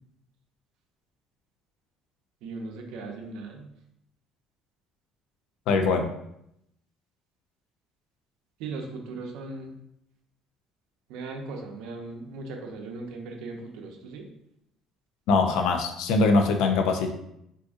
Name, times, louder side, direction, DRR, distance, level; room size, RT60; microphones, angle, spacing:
voice 1, 2.4-3.7 8.6-9.8 11.1-14.3, right 3 dB, 80° right, 2 dB, 0.6 m, -38 dB
voice 2, 5.7-6.0 15.3-17.1, left 3 dB, 70° left, 5 dB, 0.4 m, -22 dB
3.6 x 2.6 x 2.5 m, 0.78 s
cardioid pair, 175°, 0 cm